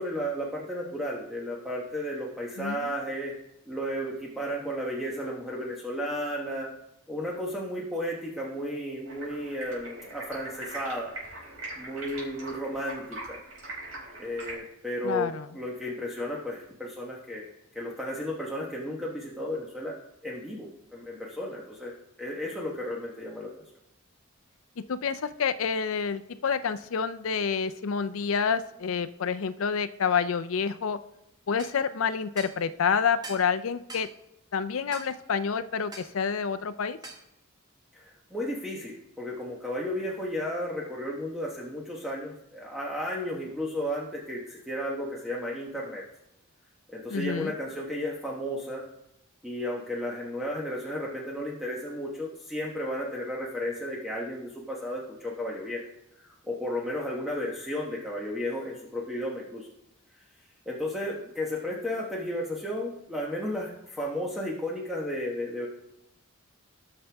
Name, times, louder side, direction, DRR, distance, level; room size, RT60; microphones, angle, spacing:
voice 1, 0.0-3.3 3.6-6.7 7.1-11.1 11.7-13.4 14.2-17.5 17.7-19.9 20.2-23.6 37.9-46.0 46.9-48.8 49.4-55.8 56.1-59.7 60.2-65.7, equal, ahead, -4 dB, 1.2 m, -33 dB
voice 2, 2.6-2.9 15.0-15.5 24.8-31.0 31.5-34.1 34.5-37.0 47.1-47.5, left 6 dB, 70° left, 11 dB, 0.5 m, -28 dB
Stream, 9.1-14.5, right 2 dB, 80° right, 5.1 m, -41 dB
sound 1, 31.6-31.8 32.4-32.6 33.2-33.5 33.9-34.1 34.9-35.1 35.9-36.1 37.0-37.2, right 2 dB, 20° right, 1.3 m, -43 dB
18.5 x 6.6 x 3.4 m, 0.83 s
head